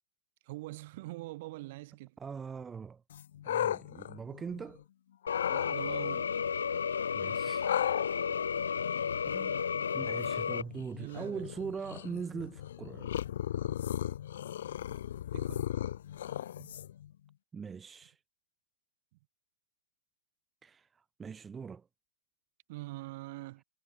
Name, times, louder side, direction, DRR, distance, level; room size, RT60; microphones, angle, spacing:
voice 1, 0.4-2.2 5.5-6.4 11.0-11.5 15.3-15.7 16.6-16.8 22.7-23.6, right 19 dB, 45° right, 3.9 m, -44 dB
voice 2, 2.2-3.0 3.5-4.8 7.1-7.7 9.3-9.6 9.9-13.1 17.5-18.1 20.6-20.9 21.2-21.9, right 6 dB, 10° right, 2.2 m, -41 dB
sound 1, 3.1-4.8 5.2-5.8 7.6-17.1, left 11 dB, 65° left, 1.9 m, -37 dB
sound 2, 5.3-10.6, left 6 dB, 85° left, 0.7 m, -32 dB
hypercardioid pair, 145°, 0 cm